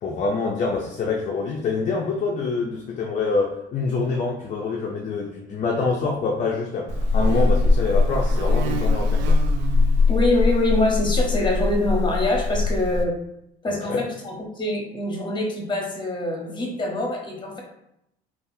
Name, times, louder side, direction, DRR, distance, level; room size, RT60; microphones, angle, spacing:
voice 1, 0.0-9.4 13.7-14.0, left 4 dB, 40° left, 0 dB, 0.5 m, -26 dB
Buzz, 6.9-13.0, left 3 dB, 70° right, 0.5 m, -21 dB
voice 2, 10.1-13.2 13.6-17.6, left 1 dB, 25° left, 0 dB, 0.9 m, -24 dB
3.4 x 2.4 x 2.6 m, 0.80 s
cardioid pair, 100°, 19 cm